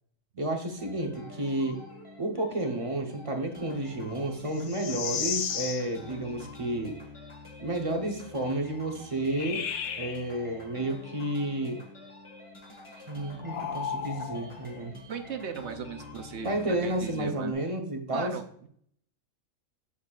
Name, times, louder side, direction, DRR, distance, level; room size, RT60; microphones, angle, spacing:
voice 1, 0.4-1.8 2.2-7.0 7.6-9.7 10.0-11.8 13.1-14.9 16.4-18.3, right 1 dB, 30° right, 2 dB, 0.9 m, -31 dB
sound 1, 0.8-17.2, left 2 dB, 25° left, 1.6 m, -47 dB
sound 2, 4.5-5.9 9.2-10.2 13.4-14.6 17.1-17.5, left 7 dB, 65° left, 0.9 m, -34 dB
voice 2, 15.1-17.5 18.1-18.7, right 6 dB, 65° right, 6 dB, 0.9 m, -38 dB
7.2 x 6.5 x 2.4 m, 0.63 s
omnidirectional pair, 1.4 m